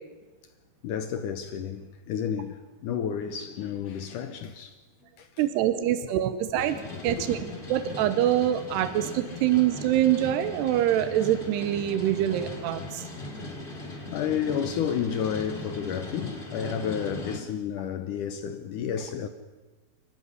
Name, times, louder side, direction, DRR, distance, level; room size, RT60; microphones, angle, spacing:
voice 1, 0.8-4.8 5.2-5.4 6.6-6.7 7.1-7.3 14.1-19.3, left 8 dB, 70° left, 2.0 m, -31 dB
voice 2, 5.4-6.8 7.0-7.4 7.7-13.0, right 12 dB, 90° right, 3.1 m, -25 dB
sound 1, 6.6-17.4, left 2 dB, 15° left, 2.0 m, -39 dB
25.5 x 15.0 x 9.8 m
omnidirectional pair, 4.6 m